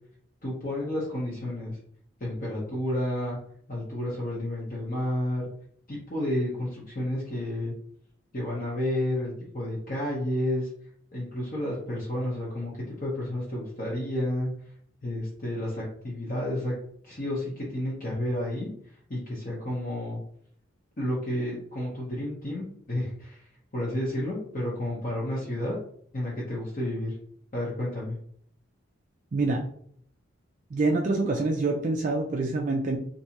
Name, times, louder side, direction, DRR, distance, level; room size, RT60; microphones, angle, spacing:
voice 1, 0.4-1.8 2.2-3.4 3.7-5.5 5.9-7.7 8.3-10.7 11.1-14.5 15.0-16.7 17.0-18.7 19.1-20.2 21.0-25.8 26.1-27.2 27.5-28.2, left 1 dB, 40° left, -6 dB, 0.8 m, -31 dB
voice 2, 29.3-29.6 30.7-33.0, right 3 dB, 35° right, 0 dB, 0.3 m, -26 dB
3.3 x 2.6 x 2.9 m, 0.63 s
head